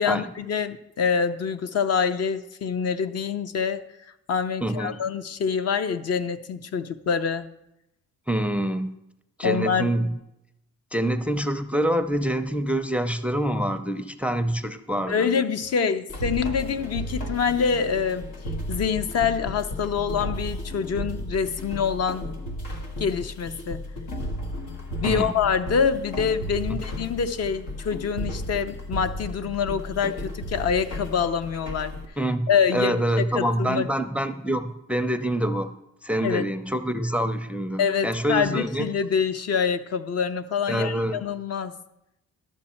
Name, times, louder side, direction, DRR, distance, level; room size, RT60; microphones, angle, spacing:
voice 1, 0.0-3.8 4.3-7.5 9.4-9.9 15.1-18.3 18.7-22.3 23.0-23.8 25.0-31.9 32.5-33.9 36.2-36.4 37.8-41.8, left 6 dB, 55° left, 10 dB, 0.7 m, -25 dB
voice 2, 4.6-5.0 8.3-8.9 9.4-10.2 10.9-15.3 25.0-25.3 32.2-35.7 36.0-38.9 40.7-41.2, right 1 dB, 5° right, 11 dB, 0.5 m, -26 dB
sound 1, 16.1-32.0, equal, 90° left, 1.3 m, -34 dB
12.0 x 7.0 x 4.3 m, 0.86 s
cardioid pair, 90°, 30 cm